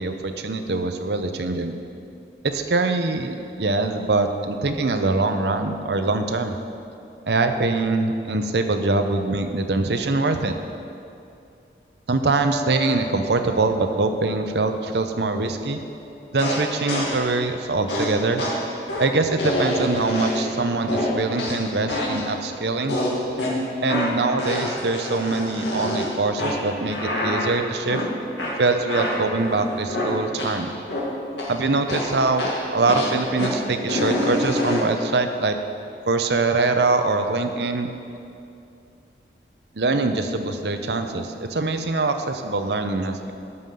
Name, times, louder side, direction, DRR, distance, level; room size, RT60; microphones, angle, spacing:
voice 1, 0.0-1.7 2.4-6.6 7.3-10.5 12.1-15.8 16.3-18.4 19.0-23.0 23.8-28.0 28.6-30.7 31.5-35.6 36.1-37.9 39.7-43.3, right 3 dB, 75° right, 7 dB, 0.8 m, -23 dB
sound 1, 12.3-17.6, equal, 10° left, 2.4 m, -38 dB
sound 2, 16.4-17.3 17.9-20.6 20.9-22.3 22.9-30.6 30.9-31.6 31.9-35.0, left 1 dB, 90° left, 2.1 m, -27 dB
12.0 x 5.6 x 7.7 m, 2.6 s
head